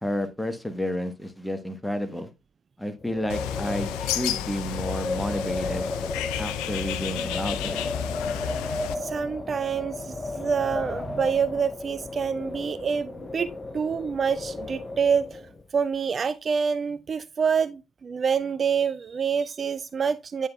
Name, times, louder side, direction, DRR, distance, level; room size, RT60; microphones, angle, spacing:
voice 1, 0.0-2.3 2.8-5.9 6.4-7.8, equal, 5° left, 1.3 m, -31 dB
Wind, 3.0-15.6, left 2 dB, 30° left, 0.8 m, -34 dB
Bird, 3.3-8.9, left 10 dB, 75° left, 0.4 m, -32 dB
voice 2, 8.9-15.4 15.7-20.5, right 6 dB, 45° right, 0.3 m, -27 dB
9.4 x 5.6 x 2.3 m
hypercardioid pair, 45°, 0 cm